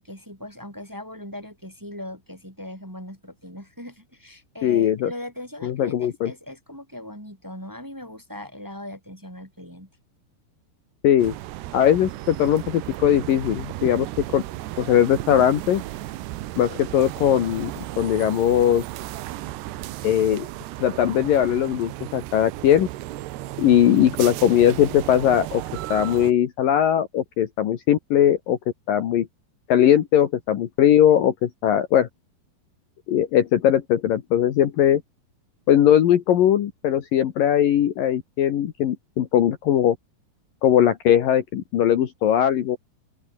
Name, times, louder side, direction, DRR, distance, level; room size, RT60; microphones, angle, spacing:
voice 1, 0.0-9.9, left 1 dB, 5° right, 4.2 m, -39 dB
voice 2, 4.6-5.1 5.6-6.3 11.0-11.4 11.7-14.4 14.8-15.8 16.6-18.8 20.0-20.5 20.8-22.9 23.6-25.6 25.9-28.6 28.9-29.3 29.7-32.1 33.1-35.0 35.7-40.0 40.6-42.8, left 10 dB, 60° left, 2.9 m, -20 dB
sound 1, 11.2-26.3, right 16 dB, 85° right, 3.2 m, -34 dB
open air
omnidirectional pair, 4.9 m